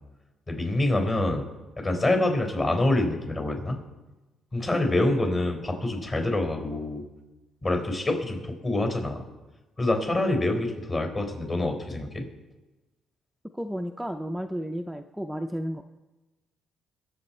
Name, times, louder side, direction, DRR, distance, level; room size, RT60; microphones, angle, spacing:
voice 1, 0.5-1.4 1.8-3.8 4.5-7.0 7.6-9.2 9.8-12.2, left 2 dB, 30° left, 3 dB, 4.2 m, -26 dB
voice 2, 13.5-15.8, equal, 5° right, 5 dB, 0.6 m, -32 dB
23.0 x 7.8 x 4.4 m, 1.1 s
cardioid pair, 90°, 0 cm